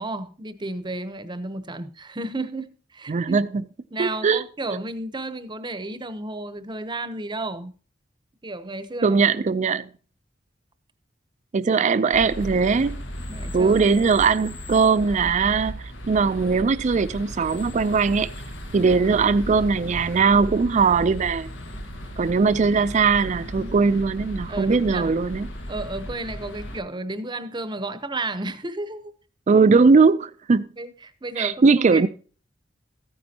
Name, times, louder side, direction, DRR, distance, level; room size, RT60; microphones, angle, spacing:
voice 1, 0.0-3.4 3.9-7.7 8.4-9.2 11.8-11.9 13.3-13.9 23.6-23.8 24.5-25.1 25.7-29.1 30.8-32.1, right 2 dB, 25° right, 0.8 m, -32 dB
voice 2, 3.1-3.6 4.0-4.4 9.0-9.9 11.5-13.0 13.5-15.8 16.1-18.3 18.7-21.5 22.2-25.5 29.5-30.6 31.4-32.1, right 4 dB, 40° right, 0.4 m, -20 dB
sound 1, 12.1-26.8, equal, 85° left, 1.5 m, -36 dB
14.5 x 9.4 x 2.8 m
head